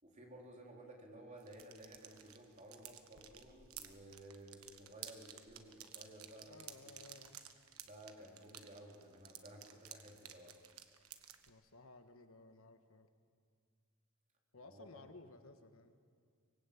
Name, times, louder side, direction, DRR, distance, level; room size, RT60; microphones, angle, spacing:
voice 1, 0.0-6.6 7.8-10.6 14.6-15.0, right 1 dB, 35° right, 0 dB, 3.9 m, -55 dB
sound 1, 1.4-11.5, right 10 dB, 85° right, 1.4 m, -54 dB
voice 2, 6.4-7.4 11.5-13.1 14.5-15.9, left 2 dB, 75° left, 8 dB, 1.4 m, -58 dB
24.5 x 20.5 x 8.6 m, 2.2 s
head